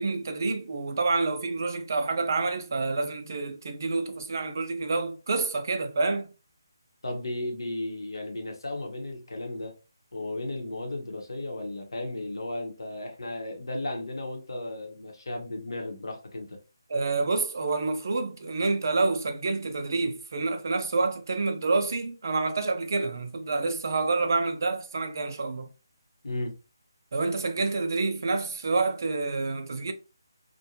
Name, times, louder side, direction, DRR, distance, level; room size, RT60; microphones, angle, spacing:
voice 1, 0.0-6.3 16.9-25.7 27.1-29.9, right 3 dB, 50° right, 0.4 m, -28 dB
voice 2, 7.0-9.7 10.1-16.6 26.2-26.5, left 2 dB, 85° left, 0.9 m, -34 dB
2.5 x 2.2 x 2.8 m
hypercardioid pair, 170°, 2 cm